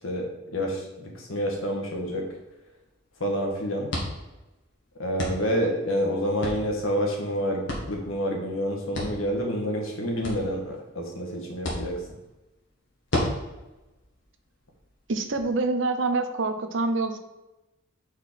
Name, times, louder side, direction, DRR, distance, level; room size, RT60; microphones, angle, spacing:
voice 1, 0.0-2.2 3.2-3.9 5.0-7.6 7.9-12.0, equal, 85° left, 0 dB, 1.7 m, -28 dB
sound 1, 2.0-15.4, left 1 dB, 60° left, 1.8 m, -37 dB
voice 2, 15.1-17.2, right 3 dB, 65° right, 7 dB, 0.7 m, -26 dB
4.8 x 4.6 x 6.0 m, 1.0 s
head